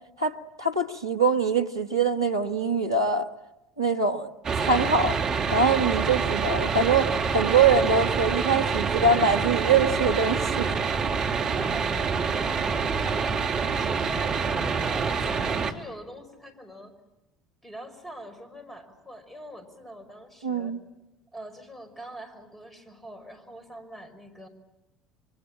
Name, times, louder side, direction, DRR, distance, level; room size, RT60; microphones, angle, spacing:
voice 1, 0.2-3.3 3.8-5.2 5.5-10.7 20.4-20.8, right 4 dB, 85° right, 4 dB, 1.3 m, -23 dB
sound 1, 4.4-15.7, right 5 dB, 35° right, 2.6 m, -26 dB
voice 2, 11.4-11.9 12.7-16.9 17.6-20.8 21.3-24.5, right 1 dB, 5° left, 9 dB, 5.5 m, -43 dB
27.5 x 24.0 x 8.8 m, 0.99 s
figure-of-eight pair, 60°, 2 cm